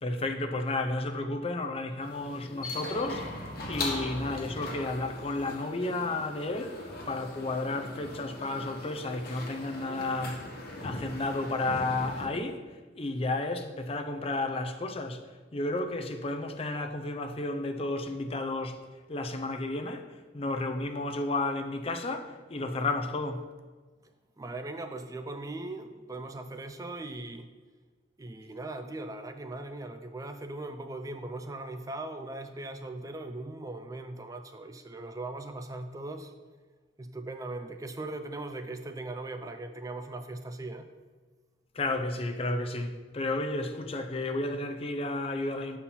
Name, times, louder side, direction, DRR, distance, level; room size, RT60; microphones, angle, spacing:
voice 1, 0.0-10.4 10.8-12.6 13.0-18.8 19.1-23.5 41.7-45.8, left 2 dB, 30° left, 0.5 m, -32 dB
sound 1, 2.0-12.3, left 2 dB, 55° left, 1.3 m, -40 dB
voice 2, 24.4-27.5 28.2-36.3 37.0-40.8, right 2 dB, 20° right, 0.4 m, -39 dB
7.0 x 4.4 x 5.6 m
head